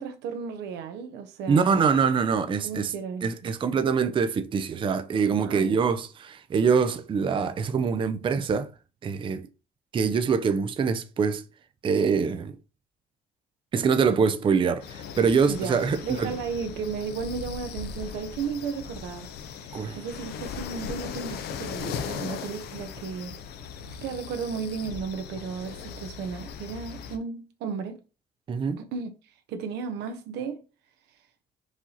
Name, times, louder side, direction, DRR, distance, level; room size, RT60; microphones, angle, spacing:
voice 1, 0.0-1.9 2.6-3.5 5.4-5.8 15.5-23.4 23.9-28.0 28.8-29.1 29.5-30.6, right 5 dB, 85° right, 0.9 m, -34 dB
voice 2, 1.5-2.9 3.2-8.7 9.0-9.4 9.9-11.4 11.8-12.6 13.7-16.3 19.7-20.0 28.5-28.8, right 6 dB, 30° right, 0.5 m, -24 dB
sound 1, 14.8-27.2, left 7 dB, 75° left, 0.6 m, -38 dB
4.8 x 2.8 x 3.9 m
cardioid pair, 110°, 17 cm